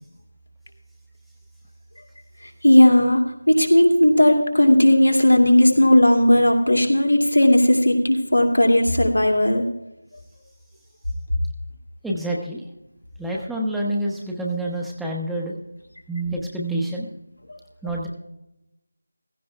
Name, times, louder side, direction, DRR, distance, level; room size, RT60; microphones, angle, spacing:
voice 1, 2.6-3.2 3.5-9.6, left 1 dB, 85° left, 2 dB, 2.5 m, -16 dB
voice 2, 12.0-12.6 13.2-15.6 16.1-17.1 17.8-18.1, right 1 dB, ahead, -2 dB, 1.0 m, -27 dB
15.5 x 15.0 x 2.3 m, 0.87 s
figure-of-eight pair, 165°, 0 cm